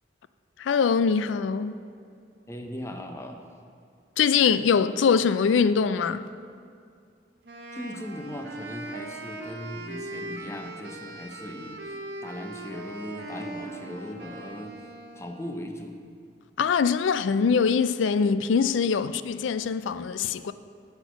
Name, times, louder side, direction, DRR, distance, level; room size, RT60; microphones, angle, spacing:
voice 1, 0.6-1.8 4.2-6.3 16.6-20.5, left 6 dB, 85° left, 0.4 m, -23 dB
voice 2, 2.5-3.4 7.7-11.8 12.2-14.8 15.1-16.0, left 1 dB, 15° left, 0.7 m, -38 dB
Wind instrument woodwind instrument, 7.4-15.5, right 2 dB, 65° right, 0.9 m, -40 dB
10.5 x 4.5 x 6.8 m
head